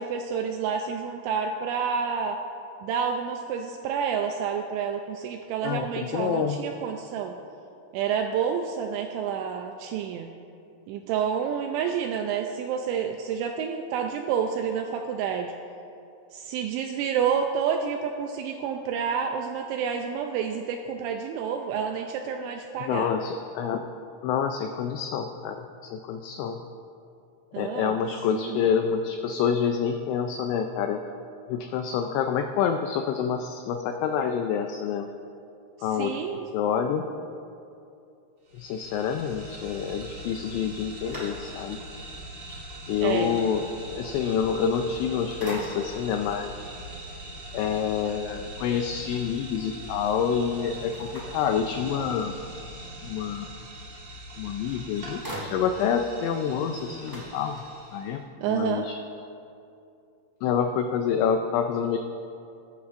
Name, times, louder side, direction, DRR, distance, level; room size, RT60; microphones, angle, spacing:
voice 1, 0.0-2.4 2.8-7.4 7.9-10.3 10.9-15.5 16.3-23.1 27.5-28.0 28.3-28.6 36.0-36.5 43.0-43.4 58.4-58.9, right 7 dB, 85° right, 4 dB, 2.7 m, -29 dB
voice 2, 5.6-6.6 22.8-23.8 24.2-26.6 27.6-31.0 31.5-35.1 35.8-36.2 36.5-37.1 38.5-41.8 42.9-46.5 47.5-52.4 53.0-53.5 54.4-57.6 57.9-59.0 60.4-62.0, left 7 dB, 90° left, 5 dB, 2.6 m, -27 dB
sound 1, 38.5-58.2, right 1 dB, 50° right, 1.7 m, -42 dB
sound 2, 40.4-41.9 42.4-42.5 44.7-45.1 45.4-46.1 50.9-52.2 54.3-54.4 54.7-56.0 56.3-56.4 56.7-58.0, right 1 dB, 25° right, 0.4 m, -41 dB
21.0 x 11.5 x 2.5 m, 2.6 s
omnidirectional pair, 5.8 m